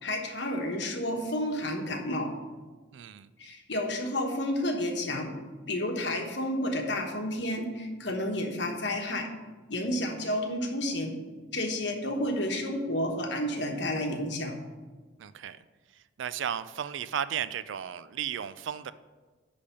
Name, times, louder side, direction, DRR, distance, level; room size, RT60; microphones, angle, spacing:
voice 1, 0.0-2.3 3.4-5.3 5.7-9.3 9.7-11.2 11.5-14.5, left 1 dB, 60° left, 3 dB, 1.2 m, -31 dB
voice 2, 2.9-3.3 15.2-15.6 16.2-18.9, right 9 dB, 75° right, 15 dB, 0.4 m, -34 dB
10.0 x 3.4 x 6.8 m, 1.3 s
head